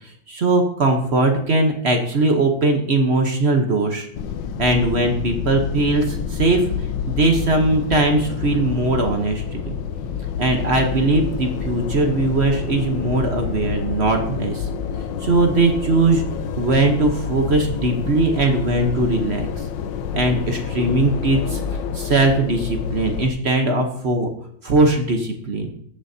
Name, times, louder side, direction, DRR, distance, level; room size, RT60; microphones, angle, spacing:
voice 1, 0.0-4.1 4.6-9.7 10.4-14.7 15.2-16.2 16.6-19.6 20.1-21.6 21.9-24.3 24.6-25.7, right 2 dB, 45° right, 4 dB, 0.9 m, -20 dB
sound 1, 4.1-23.3, left 7 dB, 70° left, 1.3 m, -28 dB
14.5 x 6.9 x 2.7 m, 0.68 s
omnidirectional pair, 2.2 m